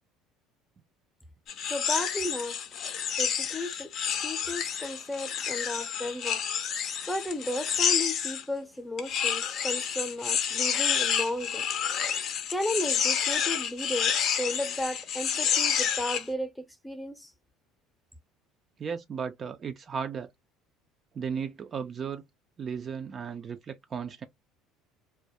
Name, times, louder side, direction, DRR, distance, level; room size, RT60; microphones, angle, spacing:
sound 1, 1.5-8.4 9.0-16.2, left 8 dB, 55° left, 0.5 m, -29 dB
voice 1, 1.7-2.6 3.2-3.9 4.2-6.4 7.1-11.7 12.5-17.3, left 1 dB, 5° left, 0.6 m, -34 dB
voice 2, 18.8-20.3 21.1-22.2 22.6-24.2, right 6 dB, 40° right, 0.3 m, -35 dB
2.2 x 2.0 x 2.8 m
supercardioid pair, 85°, 0 cm